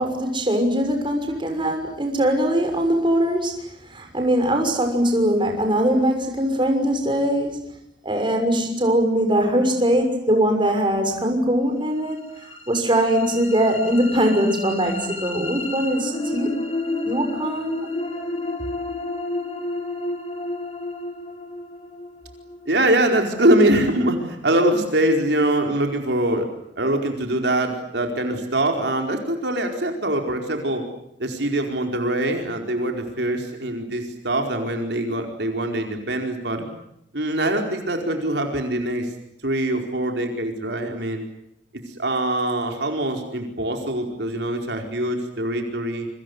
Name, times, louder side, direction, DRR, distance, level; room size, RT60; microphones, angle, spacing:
voice 1, 0.0-7.6 8.0-16.6 17.0-17.9, right 1 dB, 30° right, 4 dB, 6.3 m, -21 dB
sound 1, 12.0-24.1, left 2 dB, 35° left, 5.2 m, -31 dB
voice 2, 22.6-26.5 26.8-30.8 31.2-36.6 37.1-39.1 39.4-41.3 41.9-46.1, right 1 dB, 70° right, 3 dB, 4.6 m, -23 dB
28.0 x 26.0 x 8.1 m, 0.76 s
head